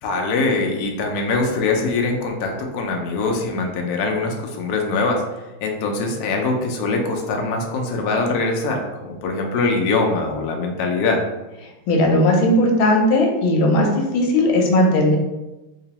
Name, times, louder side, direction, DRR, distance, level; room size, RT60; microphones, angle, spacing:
voice 1, 0.0-5.2 5.6-11.2, left 3 dB, 70° left, 2 dB, 0.9 m, -22 dB
voice 2, 11.9-15.2, left 1 dB, 85° left, 1 dB, 1.5 m, -17 dB
3.7 x 2.9 x 2.9 m, 1.0 s
omnidirectional pair, 2.2 m